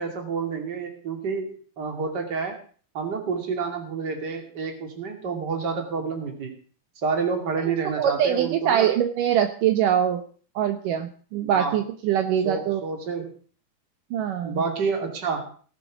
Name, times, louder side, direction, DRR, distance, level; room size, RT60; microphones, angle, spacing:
voice 1, 0.0-2.6 2.9-6.5 7.0-8.9 11.5-11.8 12.4-13.3 14.4-15.5, right 5 dB, 30° right, 4 dB, 2.8 m, -29 dB
voice 2, 8.0-10.2 10.6-12.8 14.1-14.6, right 9 dB, 75° right, 7 dB, 2.4 m, -23 dB
18.0 x 9.2 x 4.9 m, 0.43 s
omnidirectional pair, 4.1 m